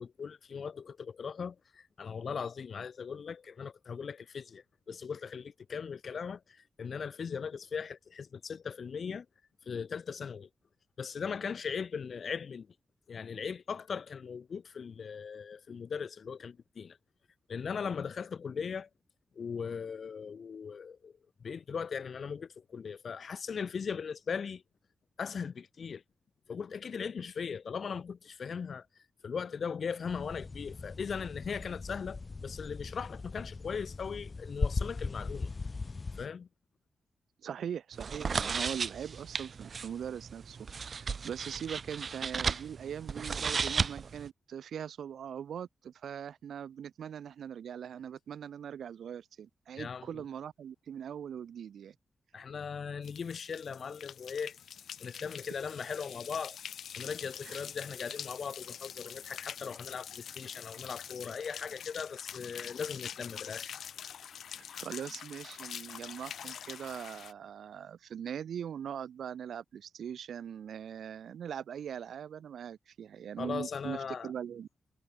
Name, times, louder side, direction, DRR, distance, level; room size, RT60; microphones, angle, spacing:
voice 1, 0.0-9.3 9.6-10.5 11.0-12.7 13.1-17.0 17.5-18.9 19.4-21.1 21.4-24.6 25.2-26.0 26.5-28.9 29.2-35.5 36.1-36.5 49.8-50.2 52.3-54.6 55.0-56.6 57.0-63.7 73.4-74.3, left 6 dB, 55° left, 4.0 m, -39 dB
sound 1, 30.0-36.3, left 3 dB, 35° left, 2.9 m, -38 dB
voice 2, 37.4-51.9 57.4-57.6 64.6-74.0 74.2-74.7, right 8 dB, 85° right, 3.0 m, -41 dB
sound 2, 37.9-44.3, right 5 dB, 50° right, 0.6 m, -35 dB
sound 3, 53.0-67.3, left 8 dB, 85° left, 6.7 m, -45 dB
wide cardioid pair, 115°, 0 cm